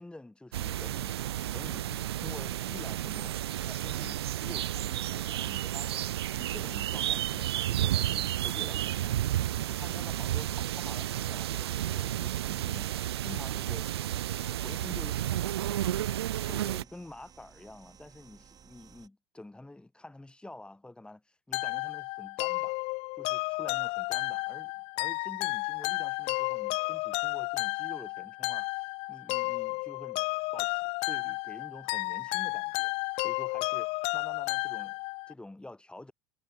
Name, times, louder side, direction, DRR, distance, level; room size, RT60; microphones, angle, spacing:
voice 1, 0.0-3.4 3.7-6.0 6.3-13.9 14.4-15.3 15.6-22.8 23.2-30.2 30.5-36.1, left 2 dB, 5° left, 1.9 m, -48 dB
sound 1, 0.5-16.8, right 12 dB, 70° right, 0.4 m, -32 dB
sound 2, 1.1-19.1, right 7 dB, 30° right, 3.5 m, -58 dB
sound 3, 21.5-35.3, left 26 dB, 45° left, 0.5 m, -32 dB
figure-of-eight pair, 75°, 14 cm